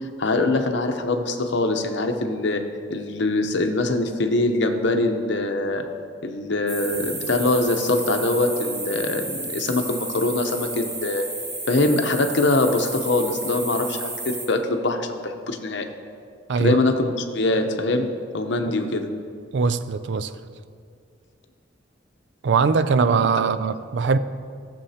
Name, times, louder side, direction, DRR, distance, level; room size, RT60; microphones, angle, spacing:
voice 1, 0.2-2.6 2.9-5.8 6.2-11.3 11.7-15.9 16.6-19.1, left 2 dB, 70° left, 0.8 m, -23 dB
sound 1, 6.7-14.5, right 2 dB, 40° right, 1.7 m, -32 dB
voice 2, 19.5-20.3 22.4-24.2, right 5 dB, 70° right, 0.4 m, -21 dB
16.0 x 6.9 x 2.8 m
head